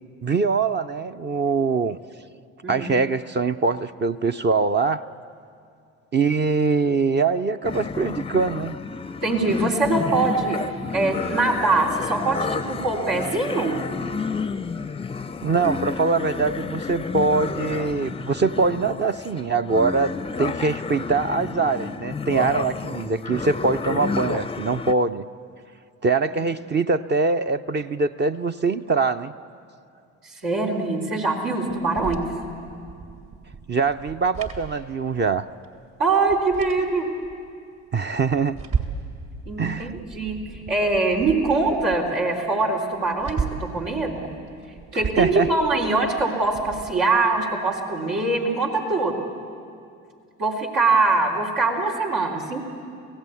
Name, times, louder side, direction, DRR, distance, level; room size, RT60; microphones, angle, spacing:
voice 1, 0.2-2.0 2.7-5.1 6.1-8.8 15.4-20.1 20.4-25.2 26.0-29.3 33.7-35.5 37.9-38.6 39.6-39.9 44.9-45.5, right 4 dB, 30° right, 9 dB, 0.6 m, -23 dB
sound 1, 7.6-24.9, left 5 dB, 15° left, 0.5 m, -31 dB
voice 2, 9.2-10.6 10.9-13.7 30.4-32.3 36.0-37.1 39.5-40.4 40.7-44.3 44.9-49.1 50.4-52.6, right 3 dB, 80° right, -3 dB, 3.6 m, -23 dB
sound 2, 31.7-35.4 35.6-35.7 36.1-37.3 37.8-39.1 39.4-42.0 42.4-42.5 42.8-43.8 44.4-46.9, right 5 dB, 50° right, 2.8 m, -35 dB
25.0 x 16.5 x 8.5 m, 2.4 s
hypercardioid pair, 60°, 36 cm